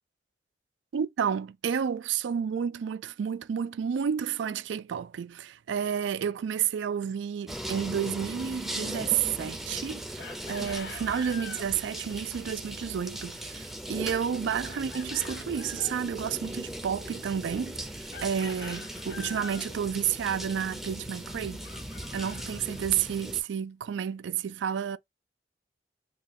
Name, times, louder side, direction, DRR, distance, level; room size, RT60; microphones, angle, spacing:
voice 1, 0.9-21.6 22.1-25.0, right 8 dB, 85° right, 0.3 m, -31 dB
sound 1, 7.5-23.4, right 1 dB, ahead, 0.5 m, -39 dB
Chicken rooster, 10.2-11.7 14.7-16.0 18.1-19.7 21.6-23.2, left 5 dB, 65° left, 0.6 m, -45 dB
2.9 x 2.3 x 4.1 m
head